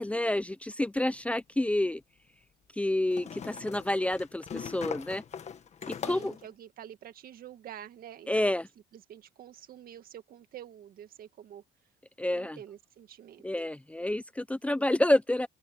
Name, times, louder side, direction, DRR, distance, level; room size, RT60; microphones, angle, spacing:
voice 1, 0.0-2.0 2.8-5.2 5.9-6.3 8.3-8.7 12.2-12.6 13.4-15.5, left 1 dB, 10° left, 0.7 m, -29 dB
sound 1, 1.1-1.2 3.1-6.5, left 7 dB, 40° left, 1.6 m, -41 dB
voice 2, 5.8-8.5 8.9-11.6 12.3-13.5, right 10 dB, 60° right, 2.1 m, -48 dB
open air
cardioid pair, 110°, 17 cm